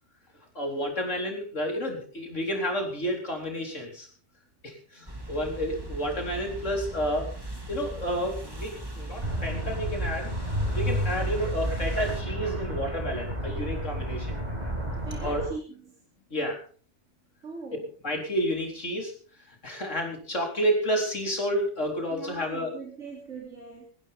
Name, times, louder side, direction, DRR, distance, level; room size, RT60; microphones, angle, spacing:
voice 1, 0.5-4.1 4.6-7.3 7.7-10.3 10.7-14.4 15.2-15.4 16.3-16.6 18.0-19.1 19.5-22.7, equal, 85° left, 1 dB, 4.5 m, -30 dB
sound 1, 5.1-12.2, right 2 dB, 20° right, 2.7 m, -37 dB
sound 2, 9.2-15.5, equal, 35° right, 6.9 m, -31 dB
voice 2, 15.1-16.0 17.4-17.9 22.1-23.9, right 4 dB, 90° right, -1 dB, 3.7 m, -40 dB
20.0 x 16.0 x 3.7 m, 0.41 s
omnidirectional pair, 1.2 m